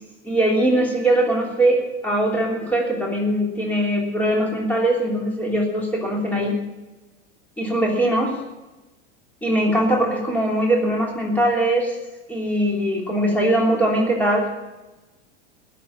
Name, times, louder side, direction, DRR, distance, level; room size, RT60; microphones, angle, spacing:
voice 1, 0.2-6.5 7.6-8.4 9.4-11.9 12.3-14.5, right 1 dB, 5° left, -2 dB, 3.2 m, -21 dB
20.5 x 7.1 x 7.2 m, 1.1 s
supercardioid pair, 140°, 35 cm